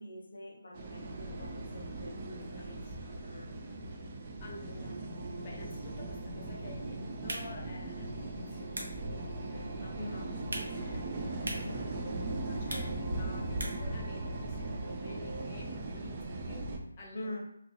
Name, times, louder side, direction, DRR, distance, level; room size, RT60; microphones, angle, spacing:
voice 1, 0.0-2.8 3.2-3.5 9.9-10.3 11.5-12.0 17.1-17.4, left 1 dB, 75° left, 0 dB, 0.9 m, -45 dB
sound 1, 0.7-16.8, right 2 dB, 35° right, 0.4 m, -39 dB
voice 2, 2.5-3.2 3.6-4.0 4.4-12.2 12.4-16.7 17.0-17.4, left 2 dB, 25° left, -3 dB, 0.7 m, -51 dB
sound 2, 4.8-15.5, right 2 dB, 50° right, 0.9 m, -46 dB
sound 3, 7.1-14.0, right 1 dB, 85° right, 0.7 m, -45 dB
2.8 x 2.5 x 2.7 m, 0.74 s
figure-of-eight pair, 165°, 0 cm